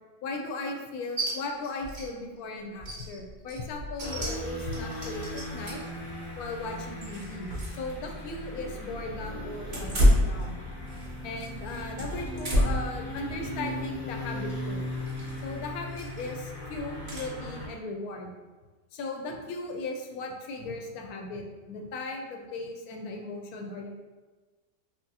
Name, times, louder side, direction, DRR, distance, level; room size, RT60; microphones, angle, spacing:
voice 1, 0.2-5.8 6.4-10.6 11.2-14.8 15.4-18.3 18.9-23.9, left 3 dB, 70° left, 3 dB, 1.0 m, -37 dB
sound 1, 1.2-1.3 1.6-2.1 2.4-2.5 2.8-5.9 6.5-7.8 8.1-8.2 9.6-11.1 11.4-12.9 13.4-13.7 15.1-15.4 15.9-16.3 17.1-17.3, equal, 35° right, 0.9 m, -29 dB
sound 2, 4.0-17.7, left 1 dB, 25° left, 0.5 m, -38 dB
5.9 x 2.0 x 2.7 m, 1.3 s
omnidirectional pair, 1.8 m